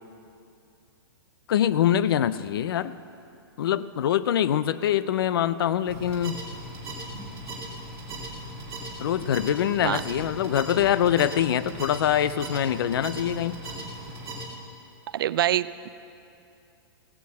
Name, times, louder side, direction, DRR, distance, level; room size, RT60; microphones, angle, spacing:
voice 1, 1.5-2.9 3.6-6.4 9.0-13.6, left 10 dB, 65° left, 15 dB, 0.5 m, -24 dB
sound 1, 5.8-14.4, right 1 dB, 20° right, 2.6 m, -38 dB
voice 2, 15.1-15.9, right 12 dB, 65° right, 16 dB, 0.4 m, -25 dB
16.5 x 8.4 x 7.7 m, 2.6 s
hypercardioid pair, 165°, 13 cm